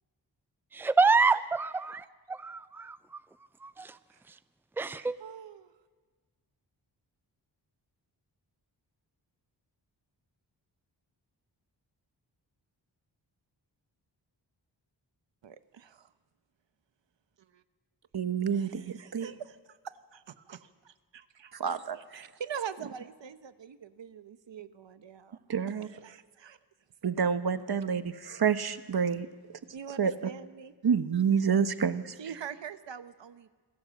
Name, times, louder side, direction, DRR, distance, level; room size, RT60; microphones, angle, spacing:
voice 1, 0.7-3.0 3.6-4.0 4.8-5.1, right 4 dB, 5° right, 14 dB, 0.6 m, -27 dB
voice 2, 5.2-5.7 15.4-16.1 17.5-17.6 18.5-25.4 25.8-26.6 29.7-30.7 32.2-33.5, right 8 dB, 85° right, 11 dB, 1.1 m, -44 dB
voice 3, 18.1-19.3 21.6-22.2 25.5-25.9 27.0-29.3 30.0-30.1 30.8-32.1, right 6 dB, 60° right, 11 dB, 1.2 m, -28 dB
26.5 x 18.0 x 7.7 m, 1.5 s
wide cardioid pair, 90°, 43 cm